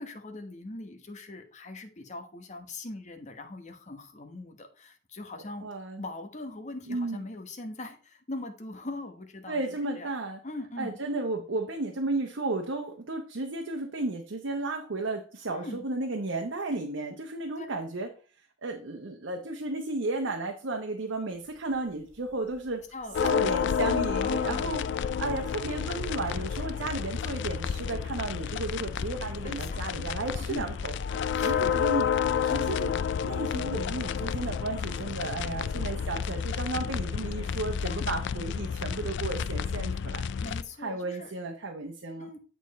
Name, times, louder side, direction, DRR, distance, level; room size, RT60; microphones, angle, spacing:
voice 1, 0.0-5.7 6.0-9.6 10.0-10.1 10.4-11.0 15.5-15.8 17.6-17.7 22.9-24.7 29.4-29.8 30.3-30.7 31.3-31.8 37.9-38.1 40.4-41.3 42.2-42.4, left 2 dB, 40° left, 5 dB, 1.1 m, -41 dB
voice 2, 5.6-6.0 6.9-7.2 9.5-10.4 10.8-18.1 18.6-22.8 23.2-24.8 25.2-30.9 31.4-32.1 32.4-40.2 40.8-42.4, right 2 dB, 90° right, 3 dB, 0.9 m, -33 dB
sound 1, 21.3-31.8, equal, 15° left, 2.3 m, -52 dB
sound 2, 23.1-40.6, left 7 dB, 65° left, 0.4 m, -30 dB
8.7 x 4.5 x 4.1 m, 0.39 s
head